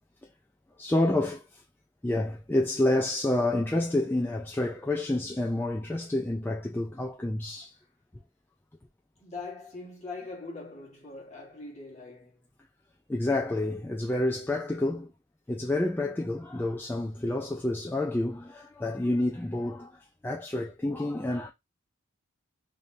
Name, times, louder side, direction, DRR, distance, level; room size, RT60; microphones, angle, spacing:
voice 1, 0.8-1.6 2.0-7.7 13.1-15.1 15.5-21.5, left 1 dB, 10° left, 0.3 m, -29 dB
voice 2, 9.2-12.4, left 3 dB, 35° left, 1.5 m, -42 dB
3.4 x 2.8 x 3.2 m
head